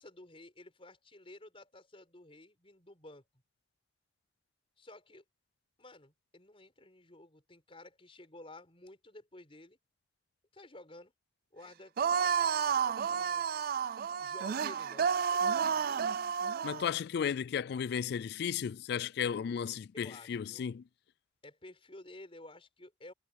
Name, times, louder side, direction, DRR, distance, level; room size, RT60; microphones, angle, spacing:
voice 1, 0.0-3.2 4.8-5.2 5.8-9.8 10.5-11.1 11.5-11.9 12.2-13.4 14.2-16.1 19.9-20.7 21.4-23.1, left 2 dB, 30° left, 4.7 m, -53 dB
sound 1, 12.0-16.9, right 7 dB, 50° right, 0.4 m, -31 dB
voice 2, 16.6-20.8, left 7 dB, 60° left, 0.3 m, -34 dB
head